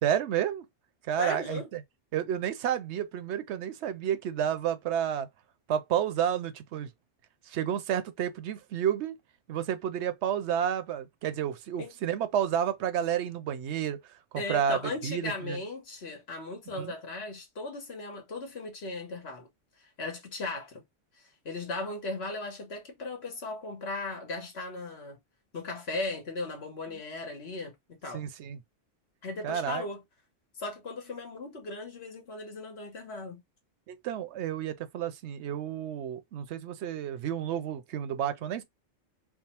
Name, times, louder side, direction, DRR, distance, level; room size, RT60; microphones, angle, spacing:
voice 1, 0.0-0.7 1.0-1.8 2.1-5.3 5.7-6.9 7.5-9.2 9.5-15.6 16.7-16.9 28.1-28.6 29.4-29.9 33.9-38.6, right 9 dB, 70° right, 0.9 m, -31 dB
voice 2, 1.2-1.7 11.8-11.9 14.4-19.5 19.8-20.8 21.2-25.2 25.5-28.2 29.2-30.0 30.6-33.4, left 2 dB, 60° left, 1.4 m, -37 dB
3.5 x 2.0 x 4.2 m
omnidirectional pair, 1.2 m